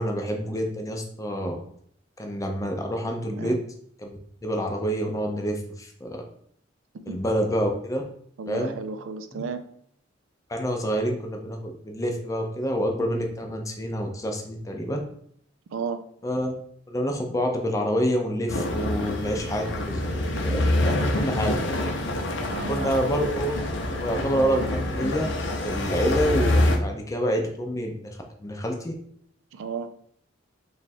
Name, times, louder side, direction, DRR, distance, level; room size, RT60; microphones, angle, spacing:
voice 1, 0.0-1.6 2.2-3.5 4.0-6.2 7.1-8.0 8.5-8.7 9.3-9.4 10.5-15.0 16.2-16.5 16.9-21.5 22.7-23.6 24.0-25.3 25.6-28.9, equal, 15° left, 2 dB, 0.5 m, -27 dB
voice 2, 8.4-9.6 15.7-16.0 22.5-23.1 29.5-29.9, right 5 dB, 80° right, 8 dB, 0.4 m, -33 dB
sound 1, 18.5-26.8, left 1 dB, 65° left, 0.6 m, -26 dB
3.1 x 2.3 x 4.1 m, 0.64 s
head